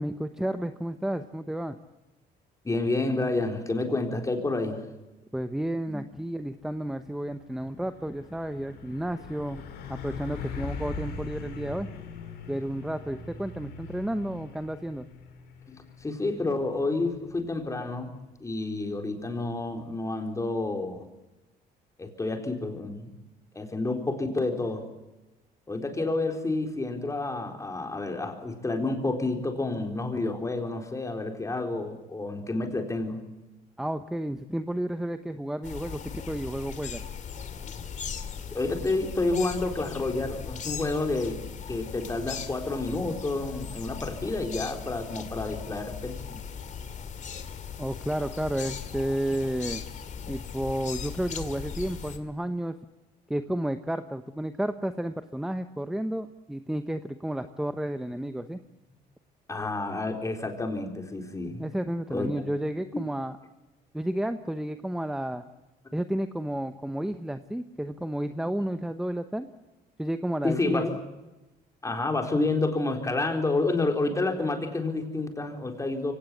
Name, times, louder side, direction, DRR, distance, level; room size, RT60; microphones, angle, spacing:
voice 1, 0.0-1.8 5.3-9.6 10.0-11.9 12.5-15.1 33.8-37.1 47.8-49.8 50.3-52.8 53.3-58.6 61.6-63.4 63.9-65.4 65.9-69.5 70.0-70.8, right 1 dB, 5° right, 10 dB, 1.0 m, -31 dB
voice 2, 2.6-4.8 5.9-6.0 15.7-18.1 18.4-21.0 22.0-23.1 23.5-24.9 25.7-33.2 38.5-41.4 41.7-46.4 59.5-61.6 62.1-62.3 70.4-70.9 71.8-76.1, left 2 dB, 20° left, 4 dB, 4.1 m, -29 dB
Truck, 6.5-6.8 7.1-19.7, left 4 dB, 75° left, 4.8 m, -42 dB
sound 1, 35.6-52.2, left 7 dB, 45° left, 2.4 m, -38 dB
24.5 x 17.5 x 8.6 m, 1.0 s
cardioid pair, 110°, 17 cm